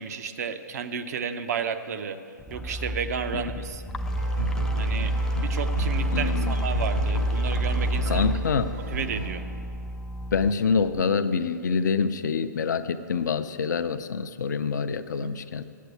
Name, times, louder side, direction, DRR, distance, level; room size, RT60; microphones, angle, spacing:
voice 1, 0.0-2.2 2.5-3.8 4.8-8.3 8.9-9.4 15.2-15.3, right 6 dB, 55° right, 9 dB, 0.7 m, -32 dB
sound 1, 2.4-11.0, right 1 dB, 5° left, 0.3 m, -28 dB
sound 2, 4.1-9.3, right 2 dB, 70° right, 2.9 m, -34 dB
voice 2, 6.1-6.5 8.1-8.7 10.3-15.6, left 5 dB, 65° left, 10 dB, 0.6 m, -26 dB
8.4 x 8.2 x 8.1 m, 2.3 s
hypercardioid pair, 130°, 10 cm